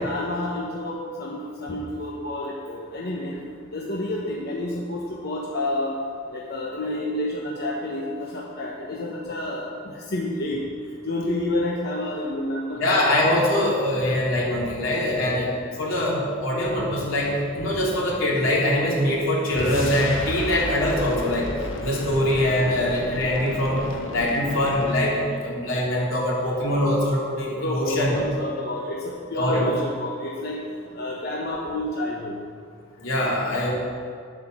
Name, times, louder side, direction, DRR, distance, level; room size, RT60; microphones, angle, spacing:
voice 1, 0.0-3.4 3.7-6.0 6.3-10.6 11.0-12.8 27.6-30.6 30.9-32.4, left 1 dB, 55° left, -3 dB, 1.1 m, -29 dB
voice 2, 12.8-15.5 15.8-21.5 21.8-23.8 24.1-28.1 29.3-29.6 33.0-33.7, left 1 dB, 85° left, -5 dB, 3.1 m, -23 dB
sound 1, 19.5-25.1, left 1 dB, 70° left, 1.1 m, -33 dB
9.8 x 8.0 x 6.1 m, 2.2 s
head